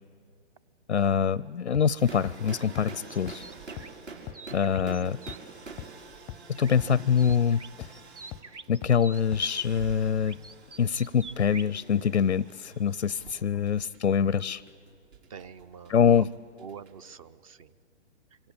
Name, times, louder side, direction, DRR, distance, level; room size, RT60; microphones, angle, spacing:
voice 1, 0.9-3.4 4.5-5.2 6.5-7.9 8.7-10.4 10.8-14.6 15.9-16.3, left 7 dB, 85° left, 23 dB, 0.6 m, -25 dB
sound 1, 1.7-1.8 2.2-2.3 2.8-2.9 3.3-3.4 3.8-3.9 4.3-4.4 4.8-4.9 5.3-5.4 5.8-5.9 6.3-6.4 6.8-6.9 7.3-7.4 7.8-7.9 8.3-8.4 8.8-8.9 9.3-9.4, left 14 dB, 10° left, 0.6 m, -39 dB
sound 2, 2.0-17.1, right 4 dB, 65° right, 5.3 m, -47 dB
sound 3, 2.5-5.4 6.5-6.9 7.2-9.2 10.2-11.7, right 4 dB, 85° right, 0.9 m, -47 dB
voice 2, 15.3-16.3 16.6-17.7, right 7 dB, 30° right, 19 dB, 0.6 m, -45 dB
26.5 x 25.0 x 8.6 m, 2.4 s
figure-of-eight pair, 125°, 34 cm